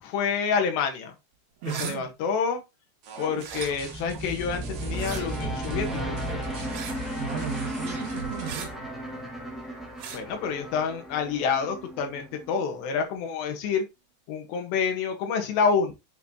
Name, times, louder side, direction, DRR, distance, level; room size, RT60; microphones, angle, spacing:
voice 1, 0.0-1.2 1.7-2.6 3.2-6.2 10.1-13.9 14.3-15.9, left 6 dB, 75° left, 3.7 m, -28 dB
sound 1, 1.6-2.0 3.4-3.7 4.9-5.2 6.7-7.0 8.4-8.7 10.0-10.2, right 7 dB, 65° right, 3.1 m, -37 dB
voice 2, 1.6-2.1 7.2-8.9, right 8 dB, 85° right, 1.5 m, -35 dB
sound 2, 3.0-8.5, right 5 dB, 50° right, 2.7 m, -42 dB
sound 3, 3.5-12.6, right 1 dB, ahead, 0.3 m, -35 dB
8.1 x 6.5 x 3.0 m
omnidirectional pair, 5.0 m